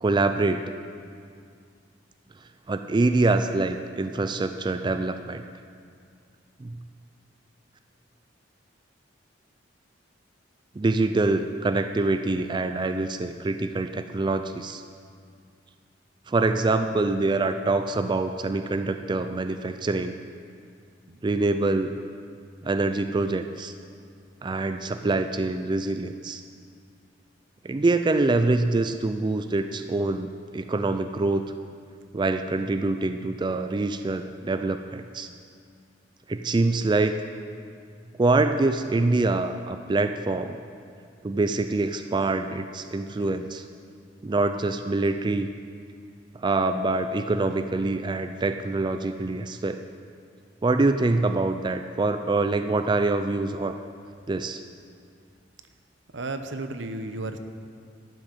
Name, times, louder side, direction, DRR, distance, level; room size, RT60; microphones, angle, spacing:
voice 1, 0.0-0.7 2.7-5.4 6.6-6.8 10.8-14.8 16.3-20.2 21.2-22.0 22.6-23.7 24.4-26.4 27.6-31.4 32.1-35.3 36.3-37.1 38.2-40.6 41.2-43.6 44.2-45.5 46.3-49.8 50.6-53.8 54.3-54.6, right 2 dB, 25° right, 8 dB, 0.4 m, -25 dB
voice 2, 56.1-57.4, right 2 dB, 80° right, 8 dB, 0.8 m, -33 dB
12.0 x 6.2 x 8.9 m, 2.2 s
head